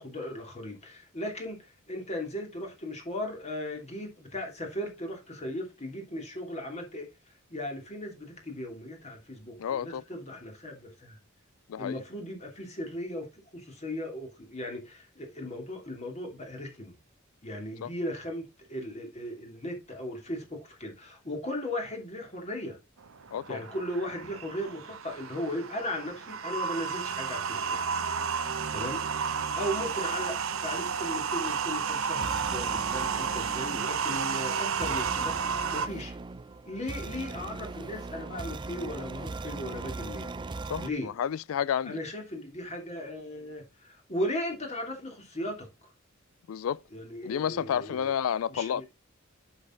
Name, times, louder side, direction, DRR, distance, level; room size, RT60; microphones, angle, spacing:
voice 1, 0.0-7.1 7.5-11.2 11.7-13.3 13.5-17.0 17.4-22.8 23.5-27.8 28.7-36.1 36.7-40.3 40.8-41.1 41.8-45.7 46.9-48.1 48.5-48.8, left 1 dB, 35° left, 2.9 m, -37 dB
voice 2, 9.6-10.0 11.7-12.0 17.8-17.9 23.3-23.6 28.8-28.9 40.7-42.0 46.5-46.8 47.2-48.8, left 8 dB, 80° left, 0.3 m, -31 dB
sound 1, 23.0-35.9, right 6 dB, 75° right, 0.8 m, -32 dB
sound 2, 31.5-40.9, right 3 dB, 20° right, 0.4 m, -40 dB
7.8 x 6.4 x 3.8 m
head